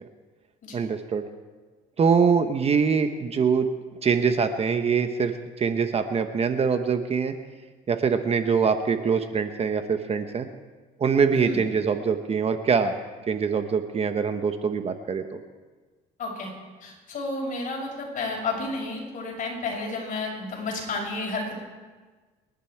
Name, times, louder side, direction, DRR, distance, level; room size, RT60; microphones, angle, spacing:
voice 1, 0.7-1.2 2.0-3.7 4.0-7.3 7.9-10.5 11.0-12.9 13.3-15.4, right 6 dB, 35° right, 8 dB, 1.1 m, -24 dB
voice 2, 16.2-16.5 16.8-21.6, left 3 dB, 50° left, -2 dB, 6.6 m, -31 dB
28.0 x 11.0 x 4.6 m, 1.4 s
cardioid pair, 110°, 17 cm